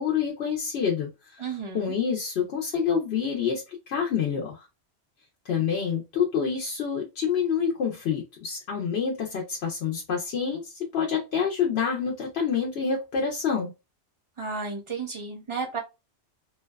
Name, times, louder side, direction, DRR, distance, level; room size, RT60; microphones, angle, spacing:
voice 1, 0.0-4.7 5.4-13.7, left 6 dB, 70° left, -1 dB, 0.9 m, -27 dB
voice 2, 1.4-1.9 14.4-15.8, right 4 dB, 35° right, 1 dB, 0.5 m, -33 dB
2.5 x 2.2 x 2.2 m, 0.25 s
omnidirectional pair, 1.2 m